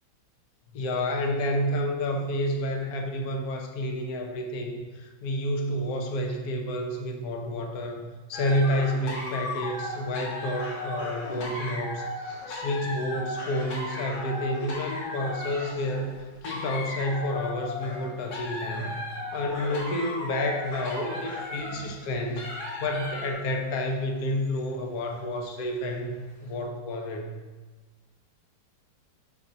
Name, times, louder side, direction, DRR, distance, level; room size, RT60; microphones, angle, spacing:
voice 1, 0.7-12.1 12.5-16.1 16.4-19.0 19.3-26.1 26.4-27.3, left 1 dB, 60° left, 3 dB, 1.2 m, -30 dB
sound 1, 8.3-23.5 24.3-24.7 25.2-25.3, left 1 dB, 80° left, 2.1 m, -36 dB
5.6 x 4.2 x 5.3 m, 1.3 s
omnidirectional pair, 2.1 m